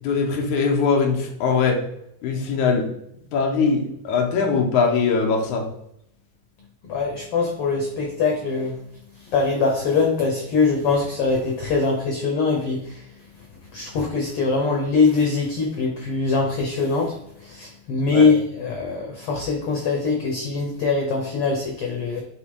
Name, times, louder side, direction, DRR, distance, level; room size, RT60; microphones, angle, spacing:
voice 1, 0.0-1.8 2.2-2.9 3.3-5.7 18.1-18.3, left 5 dB, 65° left, 1 dB, 2.4 m, -21 dB
voice 2, 6.8-8.8 9.1-22.2, left 4 dB, 90° left, 1 dB, 1.2 m, -23 dB
8.3 x 3.7 x 3.7 m, 0.75 s
omnidirectional pair, 3.9 m